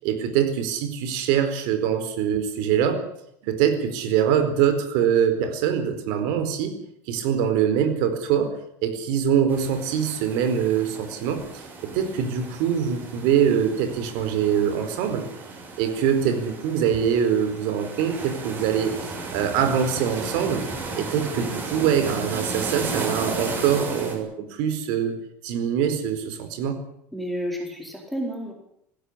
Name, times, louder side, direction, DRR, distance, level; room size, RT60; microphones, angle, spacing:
voice 1, 0.0-3.0 3.4-6.7 7.1-8.5 8.8-11.6 11.9-15.3 15.8-20.6 21.0-25.1 25.4-26.8, right 8 dB, 65° right, 8 dB, 4.4 m, -23 dB
sound 1, 9.5-24.2, right 3 dB, 25° right, 6.6 m, -35 dB
voice 2, 27.1-28.5, equal, ahead, 1 dB, 4.5 m, -30 dB
20.0 x 16.0 x 10.0 m, 0.75 s
cardioid pair, 175°, 8 cm